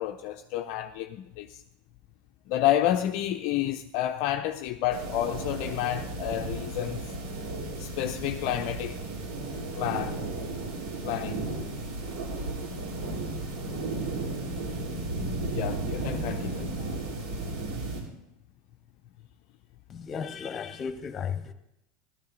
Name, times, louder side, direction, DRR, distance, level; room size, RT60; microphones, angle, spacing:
voice 1, 0.0-1.6 2.5-7.1 7.8-9.0 9.8-10.2 11.0-11.4 15.5-17.0, left 12 dB, 60° left, 0.6 m, -30 dB
sound 1, 4.9-18.0, right 2 dB, 65° right, 4.7 m, -34 dB
voice 2, 19.9-21.5, left 6 dB, 30° left, 1.3 m, -34 dB
14.5 x 12.5 x 4.0 m
hypercardioid pair, 90°, 0 cm